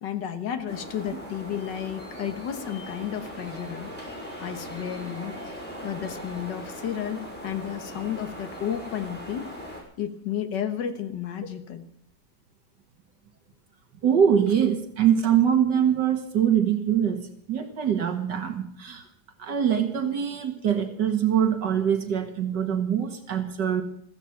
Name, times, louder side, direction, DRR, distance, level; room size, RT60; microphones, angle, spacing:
voice 1, 0.0-3.9 4.4-9.5 10.0-11.9, left 9 dB, 85° left, 8 dB, 1.9 m, -32 dB
sound 1, 0.7-9.8, equal, 5° left, 5.9 m, -39 dB
voice 2, 14.0-19.0 19.4-23.8, right 8 dB, 80° right, 6 dB, 2.3 m, -23 dB
15.5 x 15.5 x 5.9 m, 0.68 s
omnidirectional pair, 1.8 m